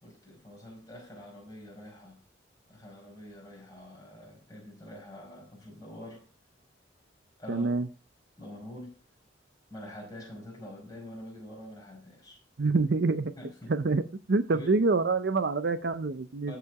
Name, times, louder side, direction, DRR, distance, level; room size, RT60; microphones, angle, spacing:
voice 1, 0.0-2.2 2.7-6.3 7.4-7.7 8.4-9.0 9.7-12.4 13.4-13.8 14.5-14.9 16.5-16.6, equal, 20° left, 4.9 m, -45 dB
voice 2, 7.5-7.9 12.6-13.3 13.7-14.0 14.3-16.5, right 3 dB, 60° right, 0.6 m, -26 dB
13.5 x 5.0 x 4.7 m
head